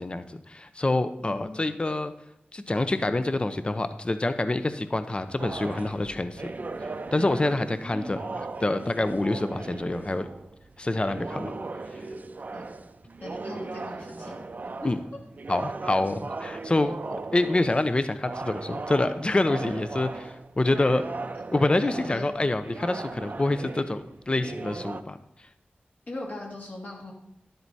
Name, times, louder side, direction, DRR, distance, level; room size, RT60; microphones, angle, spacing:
voice 1, 0.0-2.1 2.5-6.5 7.1-10.3 10.8-11.5 14.8-15.0 15.5-21.0 21.5-25.2, left 2 dB, 30° left, 11 dB, 0.6 m, -26 dB
voice 2, 1.2-1.7 7.7-8.2 12.5-12.7 13.2-14.3 14.6-14.9 21.8-22.3 26.1-27.1, left 1 dB, 55° left, -2 dB, 2.4 m, -40 dB
sound 1, 5.4-25.0, right 3 dB, 50° right, 0.6 m, -38 dB
11.0 x 7.8 x 4.2 m, 0.79 s
wide cardioid pair, 85°, 3 cm